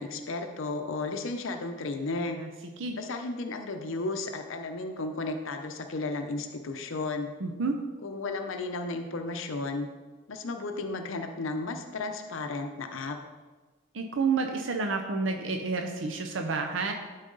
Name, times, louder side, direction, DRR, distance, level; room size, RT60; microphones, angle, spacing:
voice 1, 0.0-2.4 2.9-7.3 8.0-9.9 10.3-13.2, left 3 dB, 70° left, 5 dB, 0.6 m, -34 dB
voice 2, 7.4-7.8 13.9-16.9, right 4 dB, 65° right, 4 dB, 0.6 m, -29 dB
12.0 x 4.0 x 3.9 m, 1.3 s
head